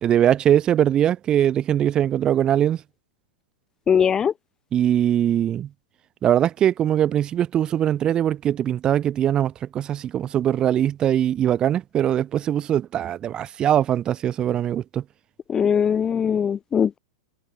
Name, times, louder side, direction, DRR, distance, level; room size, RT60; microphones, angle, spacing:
voice 1, 0.0-2.8 4.7-5.7 6.2-15.0, right 10 dB, 25° right, 1.8 m, -21 dB
voice 2, 3.9-4.3 15.5-17.0, left 7 dB, 20° left, 2.0 m, -20 dB
hypercardioid pair, 145°, 3 cm